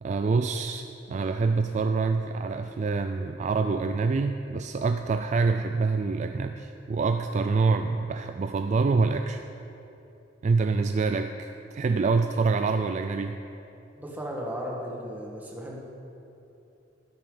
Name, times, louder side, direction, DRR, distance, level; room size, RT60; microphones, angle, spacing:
voice 1, 0.0-9.4 10.4-13.4, right 4 dB, 40° right, 7 dB, 0.3 m, -26 dB
voice 2, 13.9-15.8, equal, 10° right, -3 dB, 1.5 m, -35 dB
12.5 x 10.5 x 3.9 m, 2.9 s
head